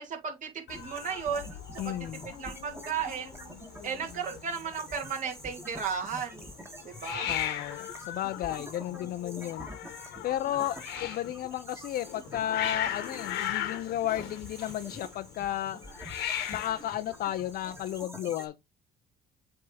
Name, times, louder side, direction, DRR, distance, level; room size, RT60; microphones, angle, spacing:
voice 1, 0.0-3.3 3.8-6.4 6.8-7.3, right 6 dB, 50° right, 2.7 m, -35 dB
Hiss, 0.7-18.0, left 10 dB, 90° left, 1.4 m, -39 dB
sound 1, 0.7-18.5, right 1 dB, 15° right, 1.7 m, -47 dB
voice 2, 1.8-2.3 7.3-9.7 10.2-15.8 16.5-18.6, left 12 dB, 65° left, 0.5 m, -33 dB
7.7 x 3.6 x 4.1 m
cardioid pair, 110°, 17 cm